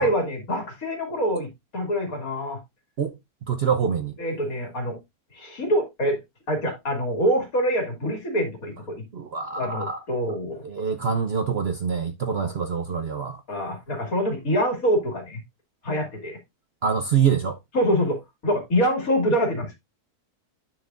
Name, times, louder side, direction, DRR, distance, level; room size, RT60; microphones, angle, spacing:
voice 1, 0.0-2.6 4.2-5.0 5.3-6.2 6.5-9.0 9.6-10.6 12.3-12.5 13.5-15.4 15.8-16.4 17.7-19.8, equal, 60° left, 2.9 m, -25 dB
voice 2, 3.5-4.1 9.1-10.0 10.6-13.4 16.8-17.6, right 7 dB, 55° right, 0.8 m, -25 dB
9.6 x 6.7 x 2.4 m
omnidirectional pair, 1.7 m